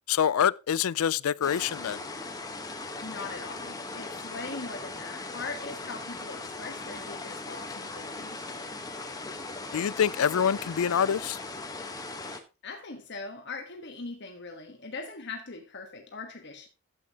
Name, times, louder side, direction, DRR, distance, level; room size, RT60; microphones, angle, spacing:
voice 1, 0.1-2.0 9.7-11.4, left 8 dB, 75° left, 0.4 m, -26 dB
sound 1, 1.4-12.4, left 3 dB, 15° left, 1.2 m, -39 dB
voice 2, 3.0-8.4 12.6-16.7, left 3 dB, 50° left, 1.3 m, -41 dB
12.5 x 8.4 x 2.9 m
head